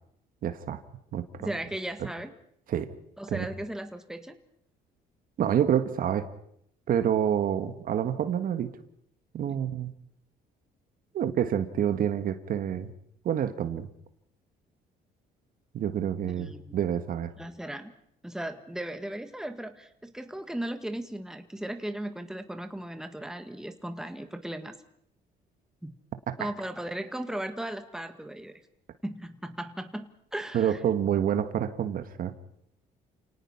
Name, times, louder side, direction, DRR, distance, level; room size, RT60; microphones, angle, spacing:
voice 1, 0.4-0.8 1.1-1.5 2.7-2.9 3.3-3.5 5.4-6.3 6.9-8.7 9.3-9.9 11.1-12.9 13.2-13.9 15.7-17.3 26.3-26.5 30.5-32.3, right 9 dB, 55° right, 10 dB, 1.6 m, -28 dB
voice 2, 1.4-2.3 3.2-4.4 9.5-9.6 16.2-16.7 17.4-17.9 18.2-24.7 25.8-26.0 26.4-28.6 29.0-30.8, right 1 dB, 5° right, 8 dB, 1.8 m, -37 dB
29.0 x 18.5 x 5.8 m, 0.70 s
cardioid pair, 110°, 17 cm